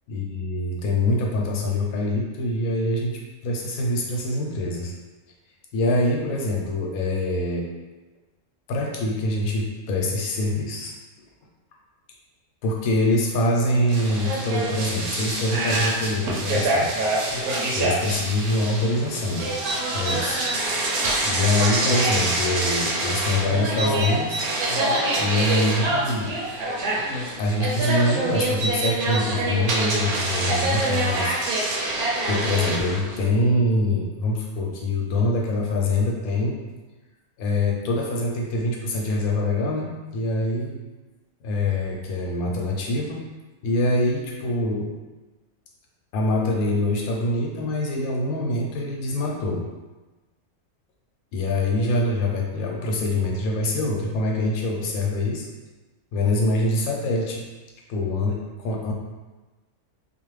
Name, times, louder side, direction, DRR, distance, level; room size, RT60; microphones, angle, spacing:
voice 1, 0.1-4.9 5.7-7.7 8.7-10.9 12.6-16.9 17.7-19.6 19.9-20.4 21.2-24.4 25.2-26.3 27.4-31.4 32.2-36.6 37.4-40.8 41.4-43.3 43.6-44.9 46.1-49.6 51.3-55.5 56.1-57.4 57.9-58.9, left 1 dB, 75° left, -1 dB, 1.0 m, -24 dB
sound 1, 13.9-33.2, right 2 dB, 85° right, 1.1 m, -25 dB
2.5 x 2.4 x 3.1 m, 1.2 s
omnidirectional pair, 1.5 m